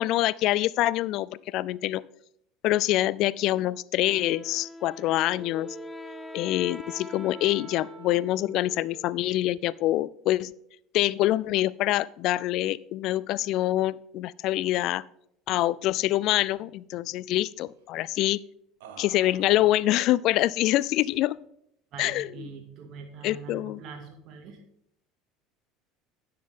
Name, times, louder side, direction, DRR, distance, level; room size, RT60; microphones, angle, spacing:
voice 1, 0.0-2.0 2.6-5.8 6.3-10.5 10.9-15.0 15.5-18.4 19.0-21.4 22.0-22.5 23.2-23.8, left 15 dB, 60° left, 21 dB, 0.4 m, -25 dB
Wind instrument woodwind instrument, 4.1-8.9, left 2 dB, 15° left, 0.7 m, -44 dB
Wind instrument woodwind instrument 2, 5.3-9.8, right 2 dB, 20° right, 3.3 m, -46 dB
sound 1, 15.5-15.7 15.9-16.1 16.5-17.2 18.8-20.0 20.7-21.3, right 7 dB, 85° right, 1.2 m, -51 dB
voice 2, 21.9-24.6, right 6 dB, 55° right, 4 dB, 2.2 m, -43 dB
10.0 x 9.5 x 3.7 m, 0.72 s
hypercardioid pair, 85°, 0 cm